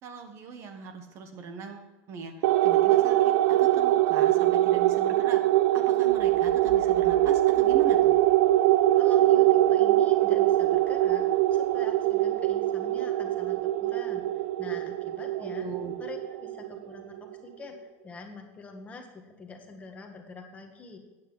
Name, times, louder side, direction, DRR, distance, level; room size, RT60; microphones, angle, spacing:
voice 1, 0.0-5.4 5.7-8.2 15.3-15.9, right 4 dB, 40° right, 6 dB, 1.2 m, -40 dB
sound 1, 2.4-17.2, right 14 dB, 70° right, 0.4 m, -23 dB
voice 2, 8.9-15.7 16.0-17.7 18.0-21.0, left 4 dB, 20° left, 4 dB, 1.3 m, -45 dB
8.9 x 6.6 x 7.9 m, 1.1 s
supercardioid pair, 150°, 8 cm